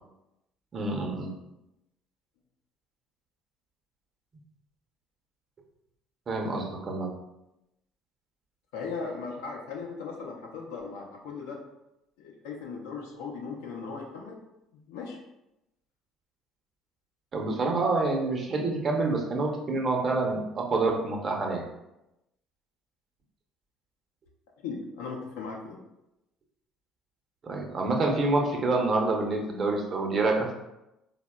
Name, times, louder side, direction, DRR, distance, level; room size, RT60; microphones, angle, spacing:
voice 1, 0.7-1.3 6.3-7.1 17.3-21.6 27.4-30.5, right 3 dB, 45° right, 2 dB, 0.6 m, -27 dB
voice 2, 8.7-11.6 12.2-14.4 14.9-15.2 24.6-25.8, left 4 dB, 80° left, 0 dB, 0.5 m, -38 dB
4.0 x 2.0 x 2.2 m, 0.91 s
hypercardioid pair, 60°, 0 cm